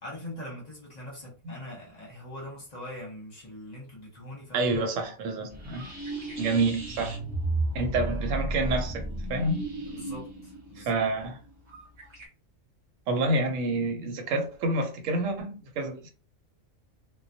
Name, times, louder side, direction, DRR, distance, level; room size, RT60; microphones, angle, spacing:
voice 1, 0.0-4.7 9.9-11.0, left 1 dB, 40° left, 0.7 m, -42 dB
voice 2, 4.5-5.9 6.4-7.2 7.7-9.0 9.3-9.6 10.8-11.4 13.1-16.1, right 2 dB, 90° right, 1.0 m, -28 dB
sound 1, 5.5-12.3, right 1 dB, 30° right, 0.7 m, -33 dB
2.2 x 2.1 x 2.6 m
omnidirectional pair, 1.3 m